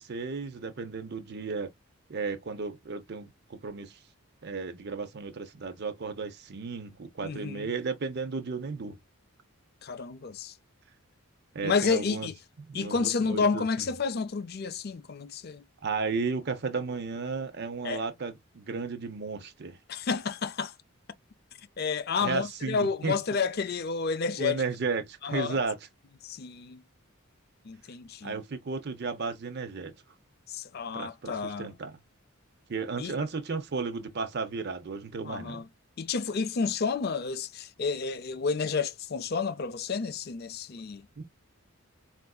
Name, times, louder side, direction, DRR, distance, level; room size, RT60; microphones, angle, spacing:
voice 1, 0.0-1.7 2.1-4.0 4.4-9.0 11.5-12.3 12.7-13.9 15.8-19.8 22.2-23.2 24.4-25.8 28.2-29.9 30.9-32.0 32.7-35.7 41.2-41.3, right 4 dB, 50° right, 0.6 m, -34 dB
voice 2, 7.2-7.7 9.8-10.5 11.6-12.3 12.7-15.6 17.8-18.0 19.9-20.7 21.8-24.6 25.2-25.6 26.2-26.8 27.6-28.4 30.5-31.7 33.0-33.2 35.2-35.7 36.0-41.1, left 5 dB, 45° left, 0.4 m, -30 dB
4.5 x 2.5 x 2.2 m
head